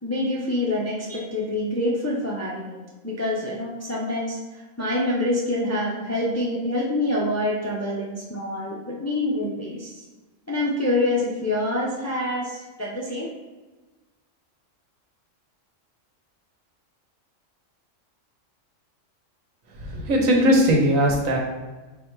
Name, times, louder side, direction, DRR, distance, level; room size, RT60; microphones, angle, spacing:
voice 1, 0.0-2.8 3.0-10.1 10.5-13.3, left 1 dB, 25° left, -4 dB, 0.3 m, -26 dB
voice 2, 19.8-21.4, equal, 90° right, 0 dB, 1.3 m, -19 dB
4.1 x 2.3 x 4.5 m, 1.2 s
omnidirectional pair, 1.4 m